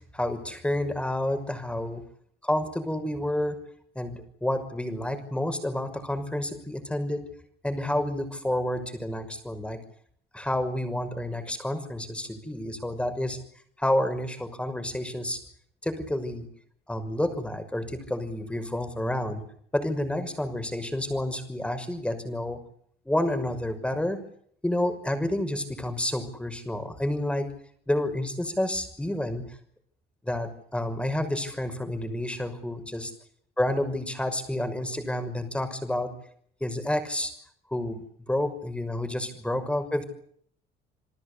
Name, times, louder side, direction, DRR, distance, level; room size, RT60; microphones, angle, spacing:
voice 1, 0.1-2.0 2.4-3.6 3.9-7.2 7.6-9.8 10.3-13.4 13.8-15.4 15.8-16.5 16.9-19.4 19.7-22.6 23.1-24.2 24.6-27.5 27.9-29.4 30.2-33.1 33.6-36.1 36.6-37.3 37.7-40.0, left 1 dB, 5° left, 9 dB, 6.0 m, -29 dB
29.0 x 19.5 x 8.4 m, 0.64 s
cardioid pair, 110°, 17 cm